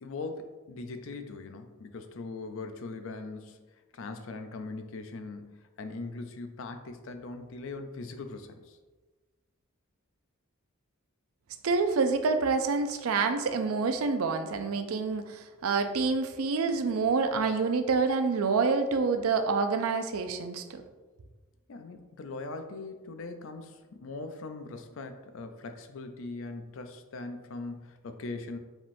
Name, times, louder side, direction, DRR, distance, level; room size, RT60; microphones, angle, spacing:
voice 1, 0.0-3.6 3.9-8.8 21.7-28.6, left 3 dB, 65° left, 7 dB, 0.4 m, -40 dB
voice 2, 11.6-20.8, right 4 dB, 75° right, 8 dB, 0.4 m, -27 dB
4.9 x 3.6 x 2.6 m, 1.2 s
head